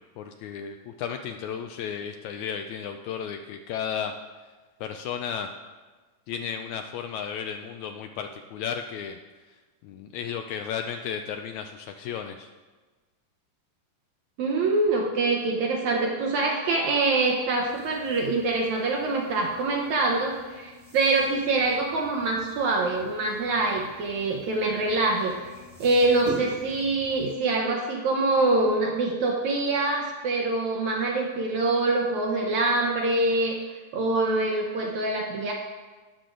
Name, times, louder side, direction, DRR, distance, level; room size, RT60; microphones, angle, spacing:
voice 1, 0.2-4.1 4.8-5.5 6.3-9.2 9.8-12.5, left 7 dB, 80° left, 6 dB, 1.7 m, -34 dB
voice 2, 14.4-25.3 25.8-33.6 33.9-35.5, right 2 dB, 70° right, -1 dB, 2.1 m, -25 dB
sound 1, 17.5-27.3, equal, 20° right, 1.4 m, -45 dB
18.0 x 6.5 x 3.8 m, 1.3 s
omnidirectional pair, 3.6 m